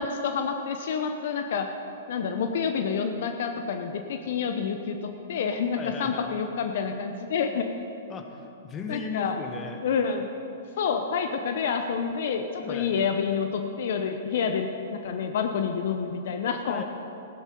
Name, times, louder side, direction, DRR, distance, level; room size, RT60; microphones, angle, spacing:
voice 1, 0.0-1.7 2.1-7.7 8.9-9.4 9.8-10.3 10.8-16.8, left 6 dB, 60° left, 6 dB, 0.8 m, -28 dB
voice 2, 5.7-6.3 8.1-9.8 12.6-12.9 16.7-16.8, left 4 dB, 25° left, 4 dB, 1.4 m, -36 dB
15.5 x 10.5 x 5.3 m, 2.7 s
hypercardioid pair, 115°, 0 cm